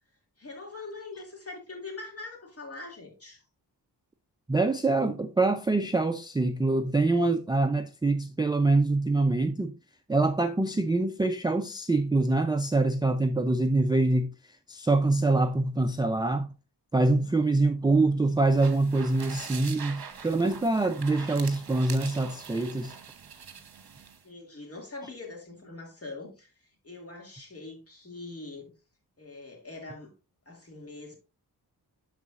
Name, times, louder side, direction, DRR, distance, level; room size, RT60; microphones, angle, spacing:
voice 1, 0.4-3.4 17.1-17.5 24.2-26.5 26.8-28.7 29.2-30.1 30.5-31.2, left 3 dB, 35° left, 2.4 m, -43 dB
voice 2, 4.5-9.7 10.1-14.3 14.7-16.5 16.9-22.9, right 2 dB, 10° right, 0.4 m, -25 dB
sound 1, 18.4-24.2, right 7 dB, 65° right, 1.1 m, -43 dB
12.0 x 4.0 x 2.5 m
wide cardioid pair, 85°, 40 cm